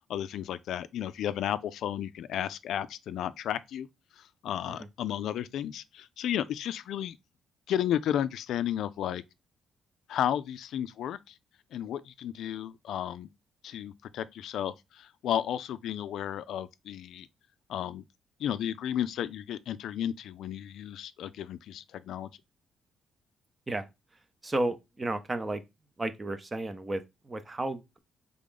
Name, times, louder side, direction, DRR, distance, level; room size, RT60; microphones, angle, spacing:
voice 1, 0.1-3.9 4.2-7.2 7.7-9.2 10.1-11.3 11.7-13.3 13.6-17.3 17.7-18.0 18.4-22.3, left 10 dB, 75° left, 0.3 m, -33 dB
voice 2, 24.4-25.6 26.0-28.0, right 2 dB, 25° right, 0.6 m, -33 dB
3.7 x 3.5 x 3.8 m
cardioid pair, 90°, 0 cm